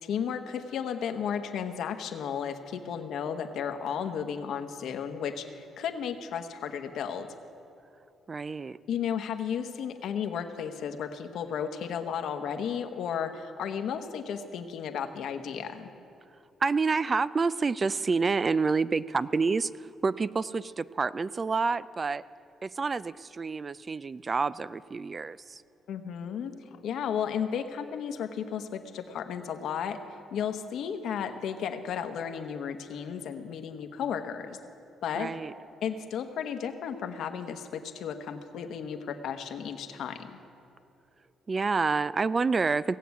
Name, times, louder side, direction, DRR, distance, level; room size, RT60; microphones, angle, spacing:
voice 1, 0.0-7.3 8.9-15.9 25.9-30.0 30.3-34.6 35.0-35.3 35.8-40.4, left 7 dB, 75° left, 7 dB, 1.0 m, -34 dB
voice 2, 8.3-8.8 16.6-22.2 22.6-25.6 35.2-35.5 41.5-43.0, right 4 dB, 35° right, 17 dB, 0.3 m, -28 dB
17.5 x 7.6 x 8.3 m, 2.8 s
cardioid pair, 90°, 0 cm